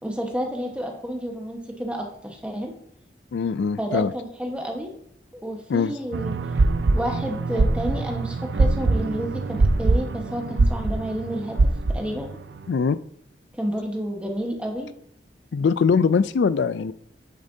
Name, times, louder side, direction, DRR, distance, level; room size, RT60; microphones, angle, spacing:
voice 1, 0.0-2.7 3.8-4.9 5.4-6.3 6.9-11.6 11.9-12.3 13.5-14.9, equal, 5° right, 1 dB, 1.2 m, -30 dB
voice 2, 3.3-4.1 5.7-5.9 12.7-13.0 15.5-16.9, left 5 dB, 75° left, 15 dB, 0.4 m, -22 dB
sound 1, 6.1-12.7, right 2 dB, 70° right, 0.5 m, -23 dB
8.6 x 7.3 x 2.7 m, 0.69 s
head